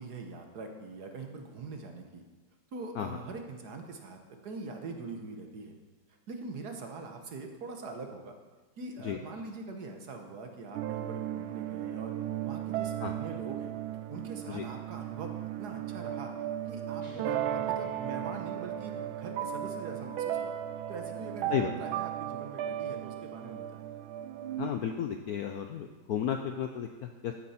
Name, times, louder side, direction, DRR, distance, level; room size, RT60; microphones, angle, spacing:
voice 1, 0.0-2.2 2.7-5.7 6.3-8.3 8.8-12.1 12.4-13.7 14.1-15.3 15.6-16.3 16.7-20.5 20.9-23.8, right 3 dB, 55° right, 4 dB, 1.5 m, -43 dB
sound 1, 10.7-24.7, right 11 dB, 85° right, 1.5 m, -36 dB
sound 2, 17.0-19.6, right 6 dB, 20° right, 1.4 m, -50 dB
voice 2, 24.6-27.3, left 9 dB, 70° left, 5 dB, 0.9 m, -33 dB
14.0 x 8.5 x 4.3 m, 1.3 s
omnidirectional pair, 2.2 m